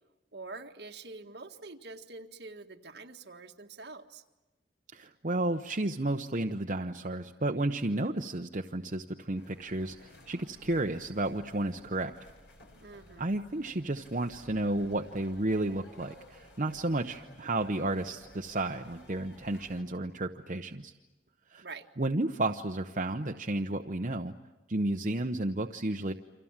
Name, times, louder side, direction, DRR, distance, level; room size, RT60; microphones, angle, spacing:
voice 1, 0.3-4.2 12.8-13.3 21.6-21.9, right 3 dB, 65° right, 4 dB, 1.8 m, -46 dB
voice 2, 4.9-12.1 13.2-20.9 21.5-21.6 22.0-24.3 24.7-26.1, right 2 dB, 45° right, 3 dB, 0.9 m, -32 dB
sound 1, 9.3-19.8, left 1 dB, 75° left, 4.9 m, -55 dB
29.5 x 25.5 x 7.4 m, 1.1 s
head